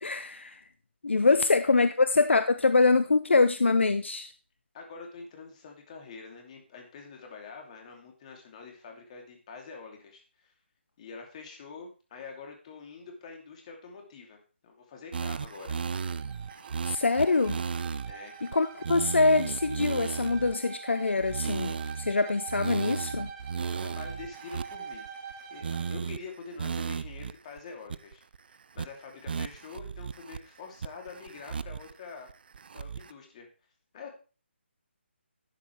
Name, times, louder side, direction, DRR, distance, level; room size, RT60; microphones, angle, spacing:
voice 1, 0.0-0.6 1.0-4.3 16.8-17.6 18.4-23.3, left 3 dB, 75° left, 0.7 m, -24 dB
voice 2, 4.7-10.5 11.0-15.8 18.0-18.4 23.7-25.1 25.5-32.3 32.7-33.5 33.9-34.1, left 4 dB, 35° left, 3.0 m, -46 dB
sound 1, 15.1-18.1 18.5-18.6 18.8-20.6 21.2-22.1 22.5-25.3 25.6-26.2 26.6-27.3 27.6-27.7 27.9-28.4 28.8-28.9 29.3-30.4 30.8-31.9 32.3-33.1, right 6 dB, 50° right, 0.4 m, -35 dB
Bowed string instrument, 15.5-26.0, right 7 dB, 25° right, 1.1 m, -44 dB
12.0 x 8.4 x 3.4 m
figure-of-eight pair, 145°, 6 cm